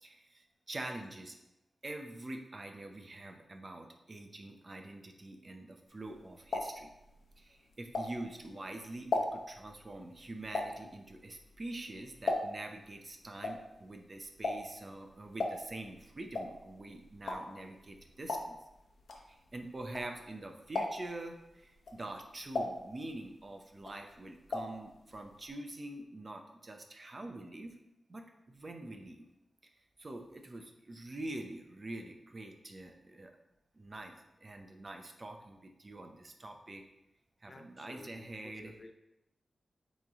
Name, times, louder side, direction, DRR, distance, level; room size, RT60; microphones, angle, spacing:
voice 1, 0.0-1.4 1.8-6.9 7.4-18.6 19.2-27.7 28.1-29.2 30.0-33.3 33.7-36.8 37.4-38.8, right 2 dB, 30° right, 4 dB, 0.6 m, -45 dB
sound 1, 6.0-8.5 8.9-12.8 13.1-20.4 20.7-21.2 21.7-23.4 23.7-24.8 25.1-25.2 25.4-25.5, left 2 dB, 75° left, 0.8 m, -37 dB
voice 2, 37.4-38.9, left 2 dB, 30° left, 6 dB, 0.4 m, -54 dB
8.7 x 3.1 x 3.6 m, 0.91 s
wide cardioid pair, 155°, 0 cm